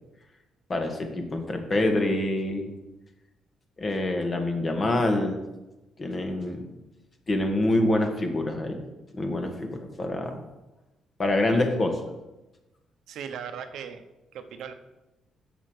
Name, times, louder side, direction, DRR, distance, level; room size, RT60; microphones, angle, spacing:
voice 1, 0.7-2.7 3.8-5.4 6.0-6.7 7.3-8.8 9.1-10.4 11.2-12.1, left 1 dB, 35° left, 4 dB, 1.8 m, -26 dB
voice 2, 13.1-14.0 14.3-14.7, right 7 dB, 75° right, 8 dB, 0.9 m, -37 dB
8.0 x 6.4 x 6.6 m, 1.0 s
cardioid pair, 90°, 0 cm